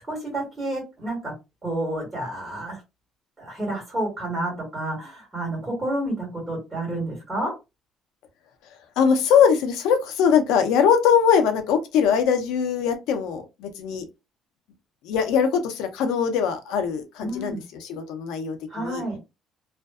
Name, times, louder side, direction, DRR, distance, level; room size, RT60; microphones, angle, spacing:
voice 1, 0.1-1.3 1.6-2.8 3.4-7.5 17.2-17.6 18.7-19.2, right 1 dB, 10° right, 1.5 m, -30 dB
voice 2, 9.0-14.0 15.0-19.0, left 7 dB, 85° left, 0.5 m, -21 dB
2.5 x 2.2 x 2.3 m
cardioid pair, 170°, 0 cm